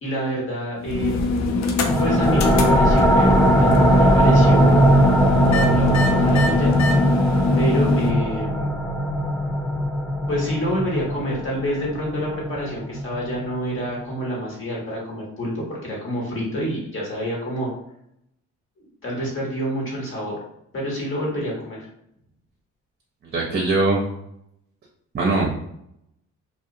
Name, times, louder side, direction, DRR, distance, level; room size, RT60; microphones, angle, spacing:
voice 1, 0.0-1.6 2.0-4.9 5.4-6.7 7.6-8.7 10.3-17.7 18.8-20.4 20.7-21.8, equal, 45° left, -3 dB, 1.2 m, -28 dB
sound 1, 0.8-8.1, left 3 dB, 65° left, 0.5 m, -23 dB
sound 2, 1.9-13.2, right 1 dB, 5° left, 0.3 m, -19 dB
voice 2, 23.3-24.0 25.1-25.5, right 3 dB, 35° right, -2 dB, 0.6 m, -21 dB
2.4 x 2.1 x 2.7 m, 0.75 s
cardioid pair, 90°, 30 cm